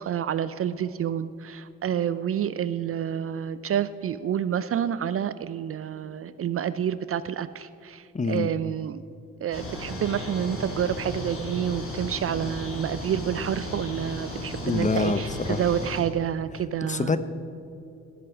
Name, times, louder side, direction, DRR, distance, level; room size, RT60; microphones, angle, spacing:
voice 1, 0.0-9.0 9.4-17.1, right 9 dB, 40° right, 15 dB, 0.5 m, -29 dB
voice 2, 8.1-8.5 14.6-15.6 16.8-17.2, left 4 dB, 20° left, 12 dB, 0.8 m, -26 dB
sound 1, 9.5-16.0, left 1 dB, 40° left, 3.2 m, -35 dB
16.0 x 7.6 x 4.9 m, 2.6 s
hypercardioid pair, 50°, 34 cm